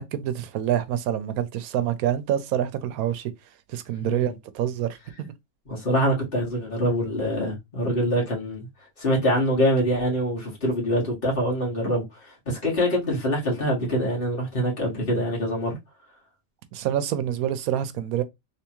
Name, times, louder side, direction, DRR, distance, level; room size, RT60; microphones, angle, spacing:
voice 1, 0.0-3.3 3.7-5.3 16.7-18.2, right 10 dB, 80° right, 1.1 m, -27 dB
voice 2, 4.0-4.3 5.7-8.7 9.0-15.7, equal, 40° left, 1.9 m, -25 dB
3.4 x 3.3 x 3.0 m
omnidirectional pair, 1.5 m